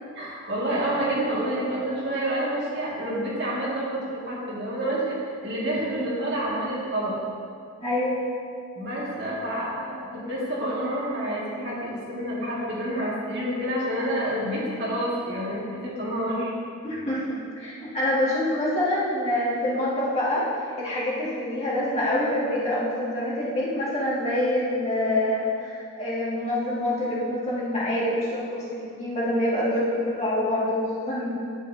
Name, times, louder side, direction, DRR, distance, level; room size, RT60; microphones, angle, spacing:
voice 1, 0.2-7.2 8.8-16.5, right 1 dB, 50° right, -6 dB, 2.1 m, -28 dB
voice 2, 7.8-8.2 16.8-28.6 29.0-31.3, left 1 dB, 30° left, -8 dB, 2.1 m, -26 dB
11.5 x 8.5 x 2.8 m, 2.3 s
head